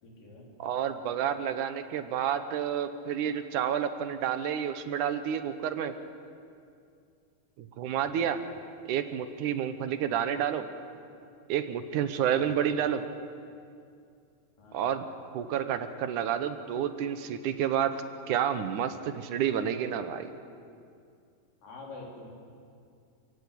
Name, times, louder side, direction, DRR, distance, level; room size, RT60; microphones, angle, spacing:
voice 1, 0.0-0.5 7.8-8.3 12.2-12.5 14.6-14.9 21.6-22.3, left 2 dB, 60° left, -1 dB, 5.5 m, -47 dB
voice 2, 0.6-5.9 7.6-8.4 8.9-10.7 11.5-13.0 14.7-15.0 15.3-18.0 18.3-20.3, right 9 dB, 65° right, 10 dB, 2.2 m, -30 dB
28.5 x 17.5 x 8.6 m, 2.4 s
omnidirectional pair, 4.3 m